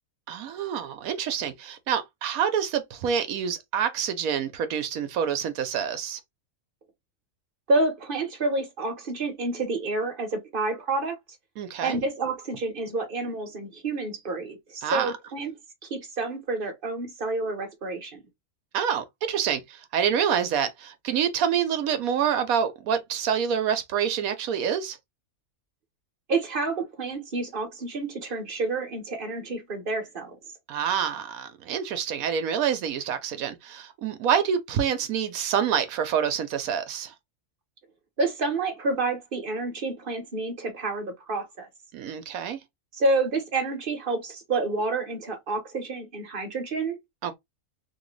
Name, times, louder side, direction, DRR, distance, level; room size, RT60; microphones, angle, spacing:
voice 1, 0.3-6.2 11.6-12.0 14.8-15.1 18.7-25.0 30.7-37.1 41.9-42.6 47.2-47.4, right 8 dB, 75° right, 1.1 m, -27 dB
voice 2, 7.7-11.1 11.8-15.5 15.9-18.2 26.3-30.4 38.2-41.7 42.9-47.0, right 3 dB, 40° right, 1.1 m, -29 dB
3.1 x 2.6 x 3.1 m
omnidirectional pair, 1.6 m